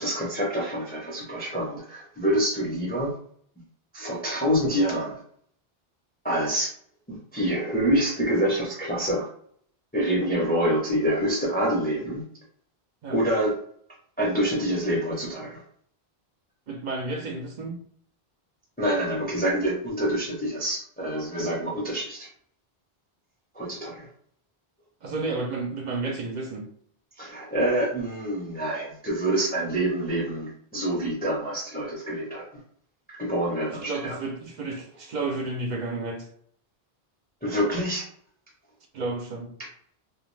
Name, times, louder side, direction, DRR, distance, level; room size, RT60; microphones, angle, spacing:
voice 1, 0.0-3.1 3.9-5.2 6.2-6.7 7.1-9.3 9.9-12.2 13.1-13.6 14.2-15.6 18.8-22.3 23.5-24.1 27.2-32.6 33.2-34.2 37.4-38.1, right 1 dB, 10° left, -4 dB, 0.5 m, -26 dB
voice 2, 16.7-17.8 25.0-26.7 33.7-36.3 38.9-39.5, right 3 dB, 55° right, 2 dB, 0.5 m, -31 dB
2.3 x 2.1 x 3.1 m, 0.62 s
omnidirectional pair, 1.1 m